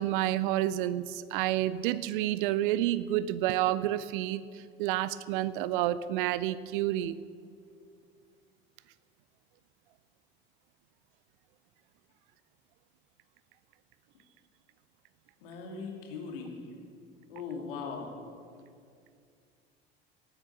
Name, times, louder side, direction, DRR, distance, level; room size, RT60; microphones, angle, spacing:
voice 1, 0.0-7.1, right 13 dB, 55° right, 17 dB, 0.6 m, -29 dB
voice 2, 15.4-16.6 17.3-18.1, left 5 dB, 60° left, 1 dB, 2.8 m, -39 dB
18.5 x 8.9 x 7.1 m, 2.3 s
figure-of-eight pair, 70°, 31 cm